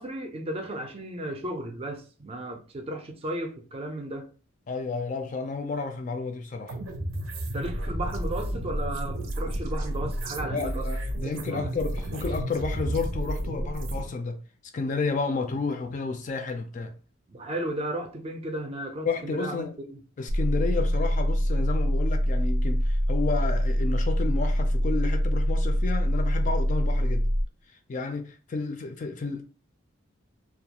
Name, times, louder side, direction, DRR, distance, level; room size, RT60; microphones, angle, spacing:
voice 1, 0.0-4.3 7.5-10.8 11.5-11.7 17.3-20.0, right 1 dB, 30° right, 0.4 m, -34 dB
voice 2, 4.7-6.8 10.5-14.4 14.7-16.9 19.1-19.7 20.2-27.3 27.9-29.4, left 4 dB, 40° left, 0.3 m, -31 dB
sound 1, 6.7-14.0, right 1 dB, 90° right, 0.6 m, -31 dB
sound 2, 20.3-27.4, equal, 85° left, 0.5 m, -24 dB
2.3 x 2.2 x 2.8 m
head